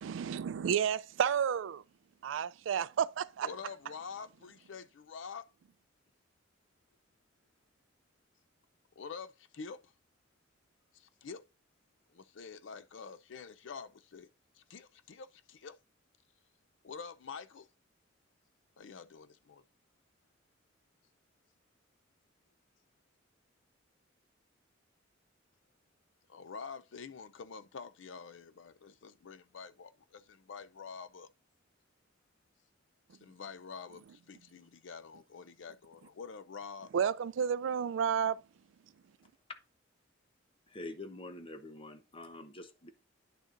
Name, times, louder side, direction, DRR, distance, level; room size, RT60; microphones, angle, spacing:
voice 1, 0.0-1.8 2.2-3.5 36.9-38.4, right 8 dB, 75° right, 0.3 m, -31 dB
voice 2, 3.4-5.5 9.0-9.9 10.9-11.4 12.1-15.8 16.8-17.7 18.8-19.6 26.3-31.3 33.1-36.9, left 5 dB, 75° left, 0.5 m, -47 dB
voice 3, 40.7-42.9, left 2 dB, 30° left, 0.8 m, -46 dB
10.0 x 6.4 x 2.5 m
head